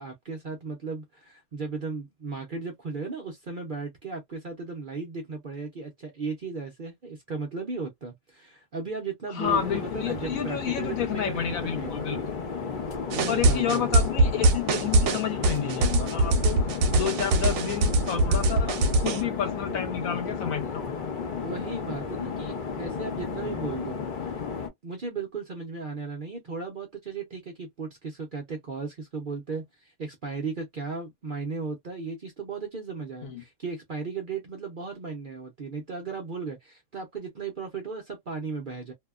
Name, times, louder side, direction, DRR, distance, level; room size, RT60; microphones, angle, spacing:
voice 1, 0.0-12.3 13.1-13.9 21.4-24.4 24.8-38.9, right 4 dB, 50° right, 0.6 m, -36 dB
voice 2, 9.3-12.4 13.3-20.9 33.2-33.4, left 8 dB, 75° left, 1.2 m, -30 dB
sound 1, 9.4-24.7, left 5 dB, 45° left, 0.7 m, -33 dB
sound 2, 13.1-19.2, right 2 dB, 75° right, 1.0 m, -22 dB
2.7 x 2.2 x 2.3 m
omnidirectional pair, 1.5 m